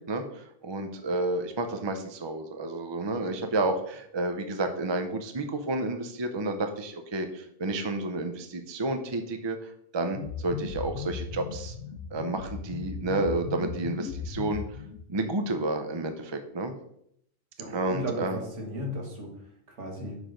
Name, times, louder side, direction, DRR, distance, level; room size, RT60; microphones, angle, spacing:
voice 1, 0.0-11.7 12.1-14.6 15.1-16.7 17.7-18.4, right 2 dB, 30° right, 7 dB, 0.5 m, -31 dB
sound 1, 10.1-15.2, left 6 dB, 75° left, 0.9 m, -37 dB
voice 2, 17.6-19.3 19.7-20.2, equal, 65° right, 1 dB, 1.9 m, -35 dB
6.0 x 4.9 x 5.1 m, 0.72 s
omnidirectional pair, 1.3 m